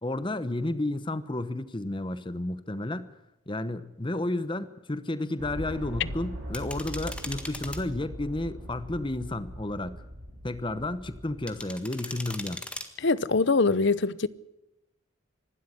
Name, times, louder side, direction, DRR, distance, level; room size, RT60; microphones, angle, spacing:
voice 1, 0.0-3.1 3.5-10.0 10.4-12.6, left 2 dB, 25° left, 0.9 m, -32 dB
sound 1, 5.4-11.6, equal, 75° right, 7.6 m, -40 dB
sound 2, 6.5-7.8 11.5-12.9, left 1 dB, 5° left, 1.6 m, -39 dB
voice 2, 13.0-14.3, left 3 dB, 60° left, 0.8 m, -23 dB
25.5 x 12.5 x 9.9 m
head